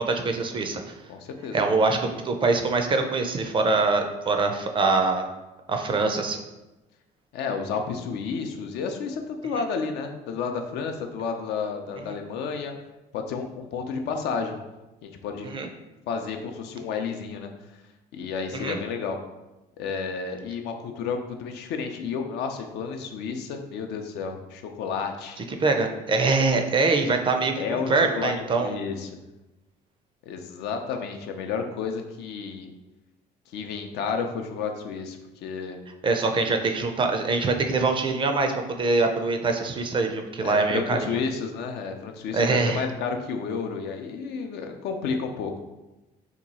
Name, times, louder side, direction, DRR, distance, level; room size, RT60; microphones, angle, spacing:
voice 1, 0.0-1.0 1.5-5.3 5.7-6.4 12.0-12.1 15.4-15.7 18.5-18.8 25.5-28.7 36.0-41.2 42.3-42.8, right 3 dB, 30° right, 5 dB, 0.4 m, -24 dB
voice 2, 1.1-1.7 7.3-12.7 13.1-14.6 15.0-15.5 16.1-17.5 18.1-19.2 19.8-25.4 27.6-29.1 30.3-32.7 33.5-35.8 40.4-45.6, left 5 dB, 80° left, 4 dB, 0.5 m, -31 dB
2.9 x 2.3 x 4.0 m, 1.0 s
cardioid pair, 110°, 17 cm